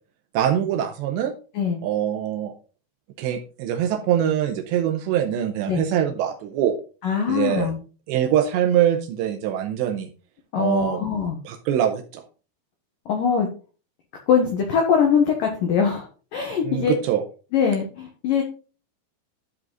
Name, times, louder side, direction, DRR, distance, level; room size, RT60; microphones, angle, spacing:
voice 1, 0.3-1.3 1.8-2.5 3.2-6.8 7.3-7.7 8.1-10.1 10.6-11.0 11.5-12.2 16.6-17.2, right 10 dB, 90° right, 5 dB, 2.5 m, -23 dB
voice 2, 7.0-7.8 10.5-11.4 13.1-13.5 14.3-16.1 16.3-16.9 17.5-18.4, left 7 dB, 90° left, 2 dB, 1.9 m, -22 dB
12.5 x 4.9 x 3.8 m, 0.36 s
omnidirectional pair, 5.9 m